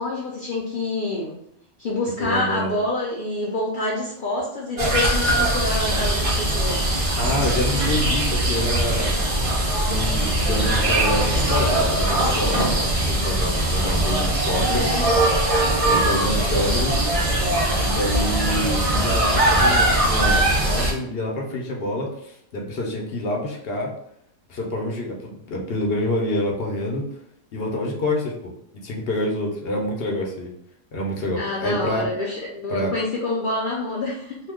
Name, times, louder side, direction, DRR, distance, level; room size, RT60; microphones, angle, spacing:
voice 1, 0.0-1.4 1.8-6.8 14.6-15.1 31.4-34.4, left 2 dB, 85° left, -3 dB, 0.4 m, -27 dB
voice 2, 2.2-2.7 7.2-9.1 9.8-15.0 15.9-17.0 17.9-23.9 24.5-27.1 27.5-28.5 28.8-30.5 30.9-32.1 32.7-32.9, left 1 dB, 55° left, -1 dB, 0.8 m, -27 dB
sound 1, 4.8-20.9, right 1 dB, 60° right, 0.3 m, -21 dB
2.7 x 2.2 x 3.5 m, 0.75 s
omnidirectional pair, 1.5 m